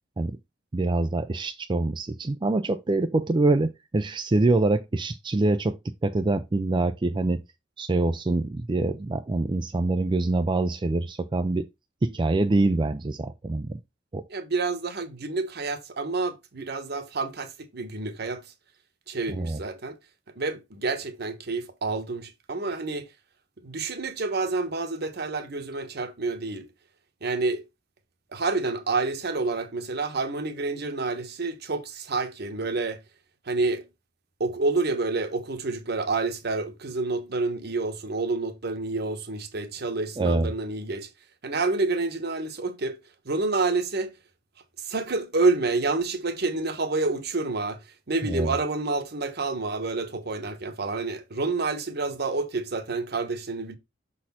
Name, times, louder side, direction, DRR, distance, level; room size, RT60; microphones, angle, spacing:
voice 1, 0.7-5.8 6.0-7.4 7.8-11.7 12.0-13.7 14.1-14.2 19.3-19.6 40.2-40.5 48.2-48.5, right 2 dB, 25° right, 0.4 m, -25 dB
voice 2, 14.3-18.4 19.1-20.0 20.4-23.1 23.6-26.7 27.2-27.6 28.3-33.0 33.5-33.8 34.4-41.1 41.4-43.0 43.2-44.2 44.8-53.8, right 3 dB, 55° right, 1.1 m, -28 dB
6.3 x 4.2 x 4.2 m
head